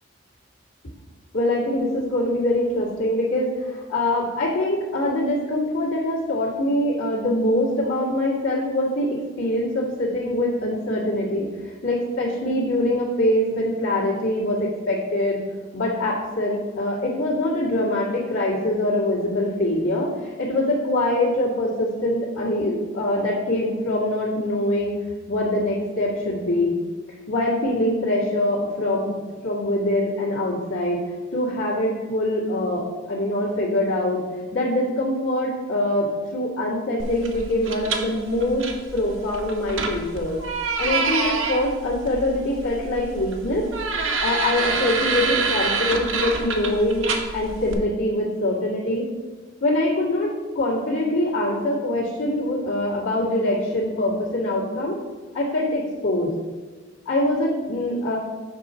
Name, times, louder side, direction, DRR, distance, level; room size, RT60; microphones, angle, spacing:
voice 1, 1.3-15.4 15.7-24.9 25.3-26.7 27.3-29.1 29.4-31.0 31.3-34.2 34.5-38.6 38.9-40.4 40.8-43.6 44.2-49.1 49.6-55.0 55.3-56.3 57.1-58.2, left 1 dB, 90° left, -10 dB, 2.0 m, -24 dB
sound 1, 37.0-47.7, right 4 dB, 80° right, 0.9 m, -27 dB
7.3 x 4.0 x 5.5 m, 1.4 s
head